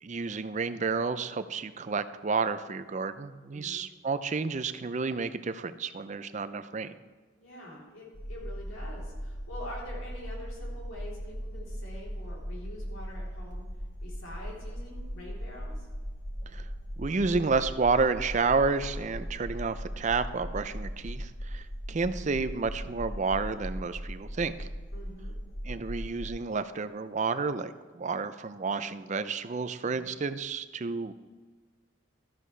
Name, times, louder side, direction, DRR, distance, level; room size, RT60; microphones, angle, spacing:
voice 1, 0.0-7.0 16.5-16.6 17.0-24.7 25.6-31.1, right 4 dB, 35° right, 12 dB, 0.4 m, -30 dB
voice 2, 3.5-3.8 7.4-13.7 14.0-15.9 24.9-25.4, left 1 dB, 80° left, -4 dB, 3.5 m, -45 dB
sound 1, 8.1-26.3, equal, 35° left, 1.5 m, -39 dB
13.0 x 10.0 x 3.3 m, 1.4 s
head